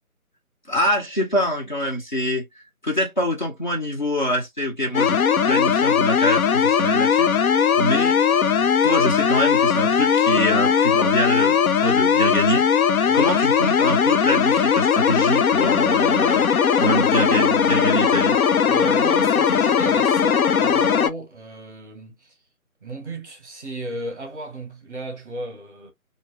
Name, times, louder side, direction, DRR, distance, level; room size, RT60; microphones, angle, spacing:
voice 1, 0.7-2.5 2.8-7.3 7.8-8.2 8.8-12.7 13.1-16.5 16.8-18.4, equal, 30° left, 0.9 m, -24 dB
sound 1, 4.9-21.1, left 7 dB, 75° left, 0.5 m, -19 dB
voice 2, 13.0-13.3 18.6-22.3 22.8-25.9, right 1 dB, 15° right, 0.9 m, -33 dB
3.0 x 2.6 x 3.0 m
figure-of-eight pair, 165°, 44 cm